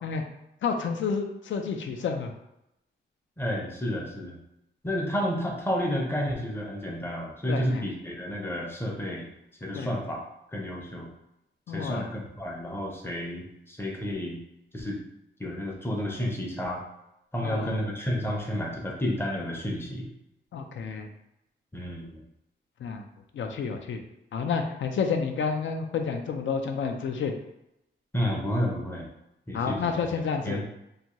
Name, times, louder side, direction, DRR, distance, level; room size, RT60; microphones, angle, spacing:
voice 1, 0.6-2.3 7.5-7.8 9.7-9.9 11.7-12.0 17.4-17.7 20.5-21.1 22.8-23.0 23.3-24.0 24.3-27.3 29.5-30.6, left 5 dB, 75° left, 5 dB, 0.4 m, -30 dB
voice 2, 3.4-4.4 4.8-9.3 9.6-10.2 10.5-11.1 11.7-14.4 14.7-15.0 15.4-16.8 17.3-20.1 21.7-22.2 28.1-29.1 29.5-29.9 30.3-30.6, equal, 10° left, -2 dB, 0.5 m, -31 dB
2.6 x 2.3 x 2.9 m, 0.85 s
wide cardioid pair, 170°, 20 cm